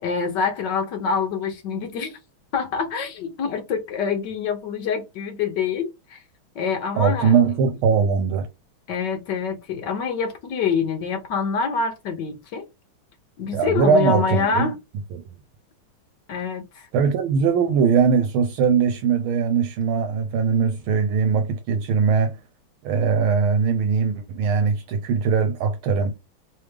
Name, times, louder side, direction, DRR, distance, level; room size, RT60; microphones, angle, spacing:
voice 1, 0.0-2.2 2.5-6.2 6.5-7.3 8.9-12.7 13.4-14.7 16.3-16.9, left 5 dB, 65° left, 1.2 m, -26 dB
voice 2, 7.0-8.5 13.5-14.7 15.1-15.2 16.9-22.4 22.8-26.1, right 6 dB, 80° right, 1.4 m, -20 dB
3.4 x 3.2 x 3.2 m
omnidirectional pair, 2.3 m